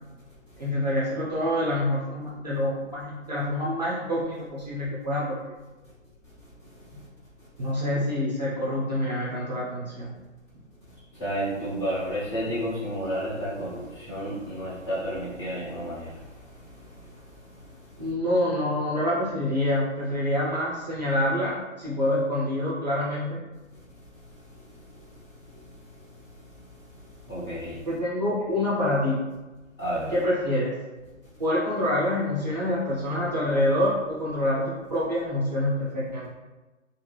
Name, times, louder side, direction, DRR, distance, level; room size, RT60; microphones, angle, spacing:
voice 1, 0.6-5.4 7.6-10.1 18.0-23.4 27.9-29.2 30.1-30.8 31.4-36.3, left 1 dB, 35° right, -7 dB, 0.6 m, -26 dB
voice 2, 11.2-16.1 27.3-27.8 29.8-30.2, equal, 20° left, -11 dB, 0.9 m, -31 dB
2.7 x 2.2 x 3.2 m, 1.2 s
figure-of-eight pair, 150°, 39 cm